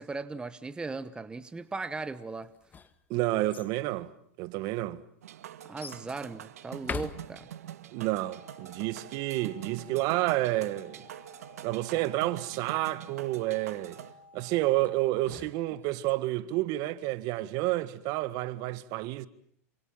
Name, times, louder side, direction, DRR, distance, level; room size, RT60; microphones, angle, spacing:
voice 1, 0.0-2.5 5.7-7.5, right 3 dB, 10° right, 1.1 m, -37 dB
sound 1, 2.4-3.7 4.6-4.7 5.8-6.1 6.7-7.8 14.8-16.1, left 6 dB, 20° left, 1.7 m, -43 dB
voice 2, 3.1-4.1 4.4-5.0 7.9-11.0 11.6-14.0 14.3-19.3, right 17 dB, 50° right, 1.8 m, -30 dB
sound 2, 5.2-14.1, right 11 dB, 80° right, 2.0 m, -45 dB
sound 3, 8.2-15.0, left 3 dB, 90° left, 5.0 m, -55 dB
28.0 x 27.0 x 7.3 m
hypercardioid pair, 115°, 8 cm